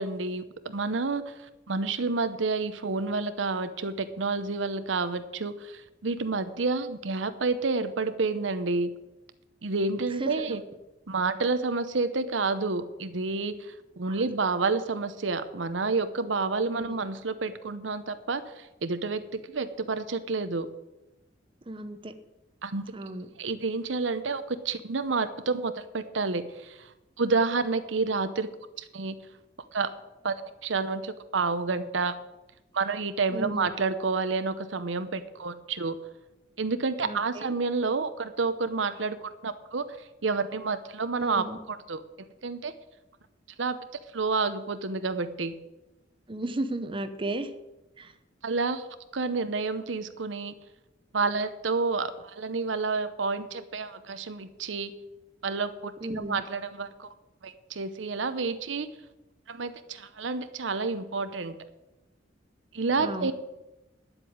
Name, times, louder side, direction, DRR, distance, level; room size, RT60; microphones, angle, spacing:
voice 1, 0.0-8.9 9.6-10.6 11.1-20.7 22.6-22.9 23.4-26.9 27.2-28.5 28.8-29.2 29.7-29.9 30.2-30.3 30.6-32.2 32.7-36.0 36.6-42.0 42.4-42.8 43.6-43.8 44.1-45.5 48.4-48.8 49.1-50.5 51.1-54.9 55.4-55.9 56.3-57.1 57.4-58.9 59.5-61.6 62.7-63.3, right 4 dB, 80° right, 11 dB, 0.8 m, -29 dB
voice 2, 10.2-10.6 16.7-17.0 21.7-22.2 22.9-23.3 33.3-33.7 37.0-37.5 41.2-41.6 46.3-47.5 48.0-48.1 56.0-56.4 63.0-63.3, right 1 dB, 30° right, 9 dB, 0.8 m, -34 dB
9.9 x 8.0 x 8.7 m, 1.0 s
head